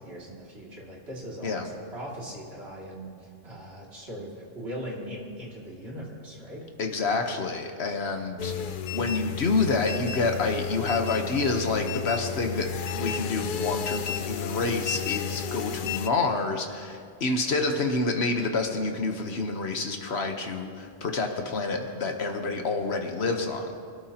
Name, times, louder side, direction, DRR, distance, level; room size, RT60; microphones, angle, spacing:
voice 1, 0.0-6.7, equal, 80° right, -4 dB, 2.9 m, -40 dB
voice 2, 6.8-23.7, left 3 dB, 85° left, 4 dB, 1.4 m, -28 dB
sound 1, 8.4-16.1, left 7 dB, 60° left, 0.7 m, -32 dB
24.5 x 13.0 x 2.9 m, 2.3 s
omnidirectional pair, 1.1 m